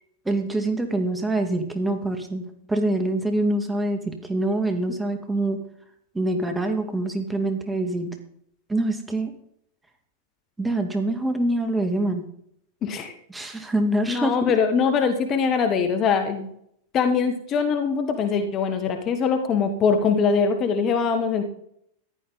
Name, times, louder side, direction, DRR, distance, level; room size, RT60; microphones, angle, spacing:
voice 1, 0.3-2.4 2.7-5.6 6.1-8.2 8.7-9.3 10.6-12.3 13.3-14.5, right 1 dB, 10° right, 6 dB, 2.2 m, -25 dB
voice 2, 12.8-13.1 14.1-16.5 16.9-21.4, left 5 dB, 30° left, 7 dB, 1.7 m, -22 dB
15.0 x 11.5 x 4.1 m, 0.70 s
figure-of-eight pair, 90°, 0 cm